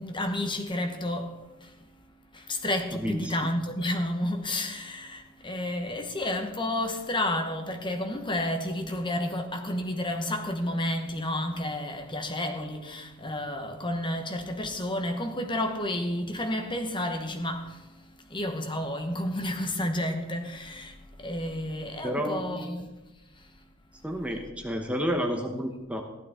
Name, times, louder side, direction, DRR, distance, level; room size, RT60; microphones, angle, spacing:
voice 1, 0.0-1.8 2.3-22.9 23.3-23.5, left 1 dB, 20° left, 1.1 m, -31 dB
voice 2, 2.9-3.4 22.0-22.7 24.0-26.0, equal, 5° right, 0.9 m, -30 dB
15.0 x 11.5 x 3.6 m
head